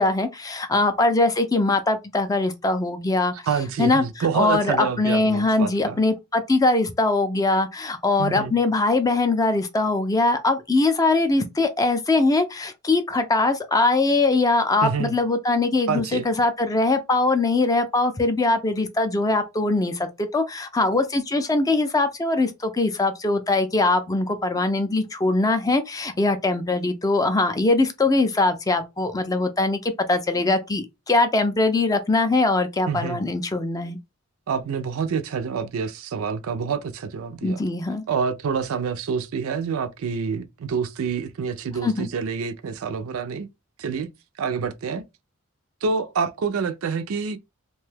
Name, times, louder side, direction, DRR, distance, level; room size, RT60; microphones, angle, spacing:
voice 1, 0.0-3.3 3.8-34.0 37.4-38.0 41.8-42.1, left 2 dB, 15° left, 0.4 m, -22 dB
voice 2, 3.5-6.0 8.2-8.6 14.8-15.1 15.9-16.3 32.9-33.2 34.5-37.6 38.1-43.5 43.8-44.1 44.4-45.0 45.8-47.4, right 6 dB, 70° right, 0.4 m, -27 dB
2.7 x 2.2 x 3.2 m
head